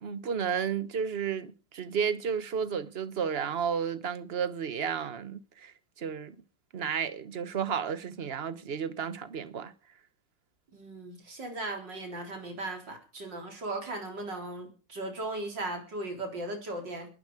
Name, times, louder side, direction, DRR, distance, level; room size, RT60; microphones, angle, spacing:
voice 1, 0.0-5.7 6.0-6.3 6.7-9.7, right 7 dB, 40° right, 1.2 m, -32 dB
voice 2, 10.7-17.1, right 2 dB, 85° right, 4.9 m, -37 dB
20.5 x 11.0 x 5.0 m
omnidirectional pair, 1.9 m